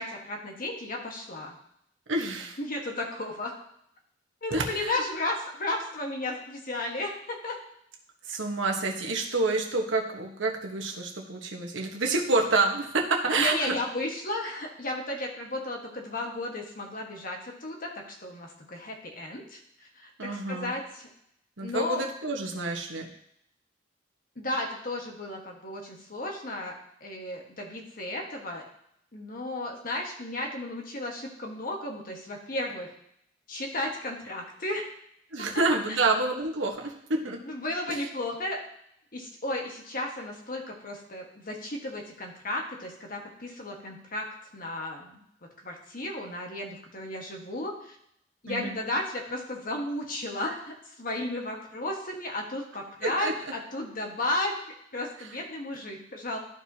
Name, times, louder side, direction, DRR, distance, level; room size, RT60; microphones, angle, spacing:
voice 1, 0.0-1.5 2.6-3.5 4.4-7.6 13.4-19.6 20.0-21.1 21.6-22.0 24.4-26.7 27.0-28.6 29.1-32.9 33.5-34.9 35.4-35.5 37.4-38.6 39.1-44.3 44.5-45.2 45.6-47.9 48.4-54.6 54.9-56.4, left 1 dB, 45° left, 1 dB, 1.4 m, -34 dB
voice 2, 2.1-2.6 4.5-5.0 8.3-13.7 20.2-20.7 21.6-23.1 35.3-37.4 37.9-38.1 48.5-48.8 53.0-53.3 55.2-55.3, right 3 dB, 85° right, 1 dB, 1.3 m, -28 dB
13.0 x 4.7 x 2.8 m, 0.74 s
head